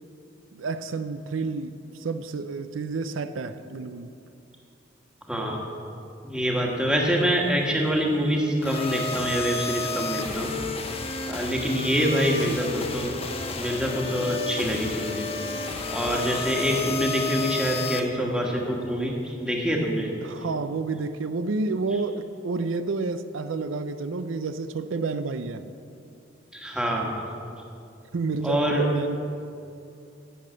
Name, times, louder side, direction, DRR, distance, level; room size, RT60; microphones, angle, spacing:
voice 1, 0.5-4.1 12.0-12.6 20.2-25.6 28.1-29.2, right 4 dB, 85° right, 11 dB, 0.5 m, -30 dB
voice 2, 5.3-5.7 6.2-10.5 11.3-13.1 13.5-15.3 15.9-20.1 26.5-27.2 28.4-28.9, equal, 5° right, -1 dB, 1.4 m, -25 dB
sound 1, 8.6-18.0, left 3 dB, 30° left, 0.9 m, -32 dB
11.0 x 7.6 x 7.6 m, 2.6 s
head